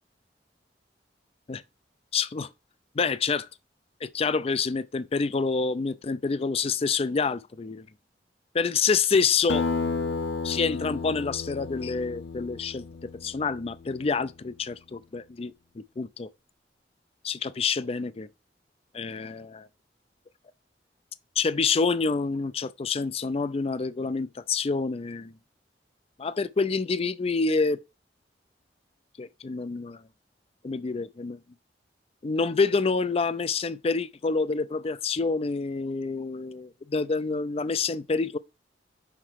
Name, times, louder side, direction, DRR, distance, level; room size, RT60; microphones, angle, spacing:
voice 1, 2.1-2.5 3.0-3.5 4.0-7.9 8.5-9.7 10.4-12.9 13.2-15.5 16.0-16.3 17.2-18.3 18.9-19.7 21.4-25.3 26.2-27.8 29.2-30.0 30.6-31.4 32.2-38.4, left 4 dB, 35° left, 0.4 m, -27 dB
Acoustic guitar, 9.5-14.3, left 4 dB, 75° left, 0.9 m, -32 dB
5.9 x 5.5 x 4.6 m
head